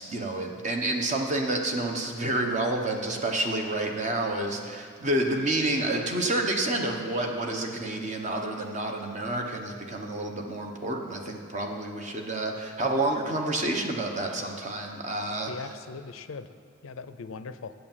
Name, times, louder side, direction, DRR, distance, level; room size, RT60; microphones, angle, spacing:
voice 1, 0.0-15.5, right 2 dB, 35° right, 2 dB, 1.0 m, -29 dB
voice 2, 15.5-16.5 16.8-17.7, left 4 dB, 85° left, 12 dB, 0.5 m, -40 dB
8.5 x 7.9 x 7.4 m, 2.4 s
head